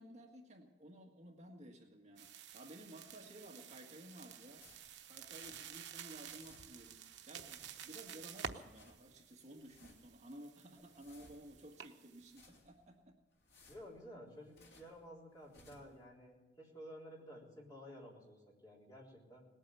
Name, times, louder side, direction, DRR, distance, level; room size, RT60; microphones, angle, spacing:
voice 1, 0.0-4.6 5.1-13.2, right 1 dB, 40° right, 1 dB, 1.6 m, -55 dB
sound 1, 2.2-12.5, right 7 dB, 80° right, 0.9 m, -51 dB
sound 2, 4.6-5.9 6.1-7.0 7.3-8.2 8.5-9.1 9.5-10.2 10.6-11.7 12.1-12.9 13.3-15.0 15.4-16.0, left 2 dB, 60° left, 3.3 m, -65 dB
voice 2, 13.7-19.5, equal, 20° left, -3 dB, 3.8 m, -53 dB
19.5 x 8.9 x 8.4 m, 1.2 s
head